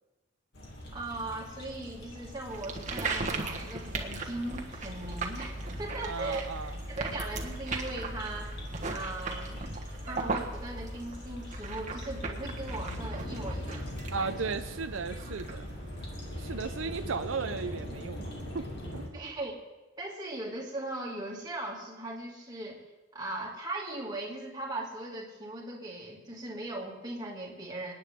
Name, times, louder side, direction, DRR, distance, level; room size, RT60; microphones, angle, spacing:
sound 1, 0.5-19.1, left 1 dB, 60° left, 2.5 m, -42 dB
voice 1, 0.9-6.5 6.9-8.5 8.9-9.6 10.0-14.4 19.1-19.5 20.0-22.8 23.1-27.9, right 2 dB, 20° right, -3 dB, 2.4 m, -39 dB
sound 2, 2.5-17.1, right 3 dB, 40° right, 1.4 m, -38 dB
voice 2, 6.1-6.8 14.1-15.7 16.4-18.7 18.9-19.0, right 5 dB, 85° right, 9 dB, 0.6 m, -35 dB
27.5 x 9.6 x 3.7 m, 1.2 s
head